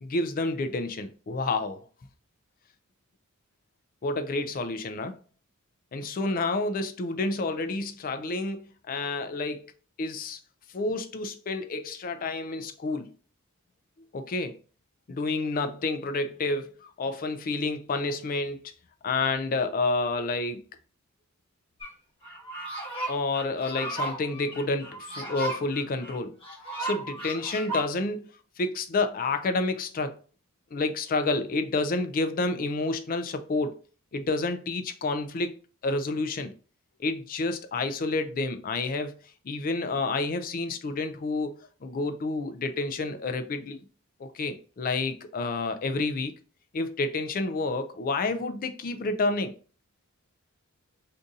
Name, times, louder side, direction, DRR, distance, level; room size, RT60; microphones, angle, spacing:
voice 1, 0.0-1.8 4.0-5.2 5.9-8.6 8.9-9.7 10.0-10.4 10.7-13.1 14.1-14.5 15.1-18.6 19.0-20.6 23.1-26.4 26.8-28.3 28.6-30.2 30.7-33.8 34.1-35.5 35.8-36.5 37.0-39.1 39.4-41.5 41.8-43.8 44.2-46.3 46.7-49.5, left 3 dB, 40° left, 0.4 m, -29 dB
sound 1, 21.8-21.9 22.2-27.9, right 2 dB, 25° left, 1.1 m, -35 dB
2.6 x 2.6 x 3.6 m
head